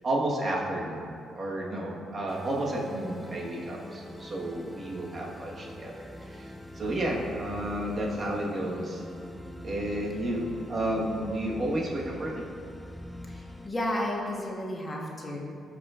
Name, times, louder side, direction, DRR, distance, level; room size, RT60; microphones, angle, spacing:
voice 1, 0.0-9.0 9.6-12.4, right 1 dB, 45° right, -3 dB, 1.3 m, -32 dB
sound 1, 2.3-13.7, left 1 dB, 5° left, 0.4 m, -44 dB
voice 2, 13.3-15.4, left 1 dB, 25° left, -2 dB, 1.2 m, -32 dB
13.0 x 5.1 x 2.5 m, 2.4 s
cardioid pair, 90°, 0 cm